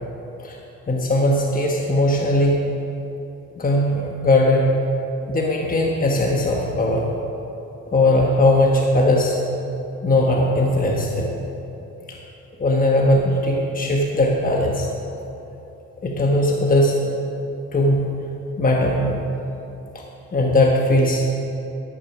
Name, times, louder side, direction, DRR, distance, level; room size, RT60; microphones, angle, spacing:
voice 1, 0.9-2.6 3.6-4.7 5.3-7.0 7.9-9.4 10.0-11.3 12.1-12.2 12.6-14.9 16.0-17.0 17.7-18.1 18.6-19.2 20.3-21.2, left 1 dB, 30° left, -1 dB, 1.2 m, -19 dB
12.5 x 6.8 x 5.9 m, 2.9 s
cardioid pair, 90°, 30 cm